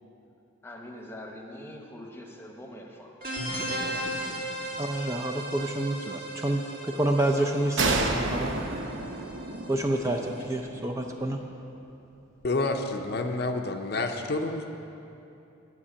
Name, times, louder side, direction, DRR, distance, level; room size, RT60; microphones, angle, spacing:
voice 1, 0.6-3.1 3.7-4.5, left 1 dB, 10° left, 1 dB, 1.0 m, -44 dB
sound 1, 3.2-10.5, right 1 dB, 45° right, 2.1 m, -37 dB
voice 2, 4.8-8.5 9.7-11.4, right 1 dB, 15° right, 2 dB, 0.4 m, -28 dB
sound 2, 7.8-11.3, right 2 dB, 70° right, 0.9 m, -30 dB
voice 3, 12.4-14.8, left 2 dB, 50° left, 5 dB, 0.6 m, -29 dB
11.5 x 6.0 x 8.6 m, 2.8 s
head